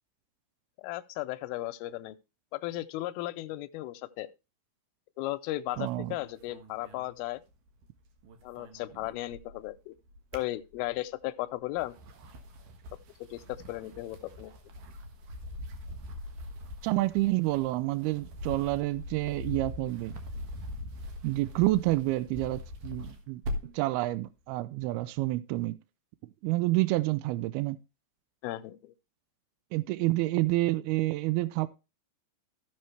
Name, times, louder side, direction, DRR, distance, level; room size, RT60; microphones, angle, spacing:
voice 1, 0.8-2.2 2.5-4.3 5.2-7.4 8.4-10.0 10.3-11.9 13.2-14.5 28.4-28.9, left 17 dB, 80° left, 2.4 m, -36 dB
sound 1, 5.7-7.8 8.1-9.7 10.1-11.1 11.6-23.9, left 1 dB, 60° right, 2.8 m, -42 dB
voice 2, 5.8-6.2 16.8-20.2 21.2-23.4 23.7-25.8 26.2-27.8 29.7-31.7, right 18 dB, 80° right, 2.5 m, -28 dB
15.0 x 6.2 x 3.3 m
omnidirectional pair, 4.6 m